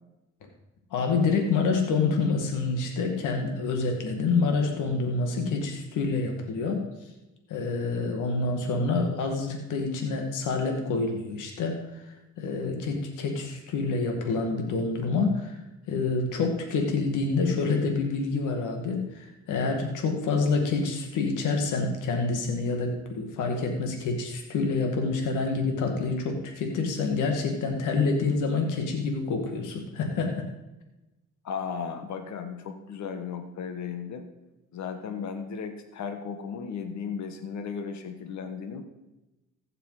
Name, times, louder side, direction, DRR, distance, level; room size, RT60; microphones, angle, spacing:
voice 1, 0.9-6.8 7.5-12.1 12.4-15.6 15.9-30.4, left 4 dB, 85° left, 3 dB, 2.0 m, -27 dB
voice 2, 31.4-34.3 34.7-38.8, left 6 dB, 65° left, 7 dB, 1.4 m, -35 dB
15.5 x 6.8 x 4.9 m, 1.0 s
cardioid pair, 90°, 30 cm